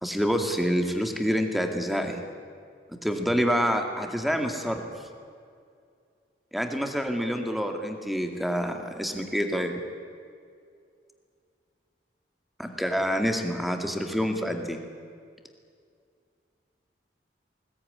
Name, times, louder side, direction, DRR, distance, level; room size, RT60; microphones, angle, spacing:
voice 1, 0.0-2.2 3.0-4.8 6.5-9.7 12.6-14.8, equal, ahead, 4 dB, 2.3 m, -27 dB
21.5 x 18.5 x 9.9 m, 2.3 s
head